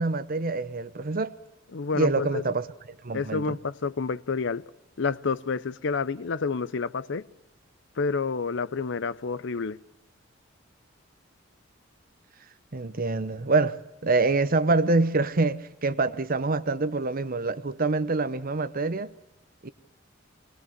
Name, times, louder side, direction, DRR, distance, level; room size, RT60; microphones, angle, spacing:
voice 1, 0.0-1.3 1.9-2.7 3.0-3.6 12.7-19.1 19.6-19.7, right 3 dB, 45° right, 0.9 m, -26 dB
voice 2, 1.7-2.4 3.1-4.6 5.0-7.3 8.0-9.8, left 4 dB, 65° left, 0.7 m, -29 dB
21.5 x 20.5 x 6.7 m
head